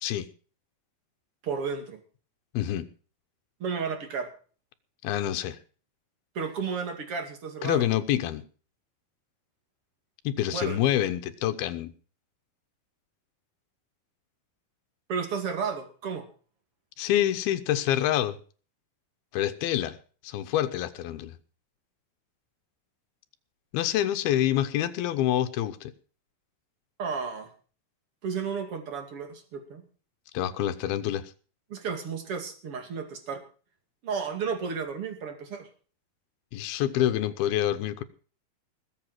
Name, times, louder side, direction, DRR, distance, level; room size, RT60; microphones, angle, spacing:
voice 1, 1.4-2.0 3.6-4.3 6.3-7.9 10.5-10.8 15.1-16.2 27.0-27.5 28.2-29.8 31.7-33.4 34.0-35.7, right 5 dB, 40° right, 2.9 m, -32 dB
voice 2, 2.5-2.9 5.0-5.6 7.6-8.4 10.2-11.9 17.0-18.4 19.3-20.0 20.2-21.4 23.7-25.9 30.3-31.3 36.5-38.0, left 12 dB, 85° left, 2.9 m, -27 dB
20.0 x 7.8 x 6.1 m
omnidirectional pair, 4.3 m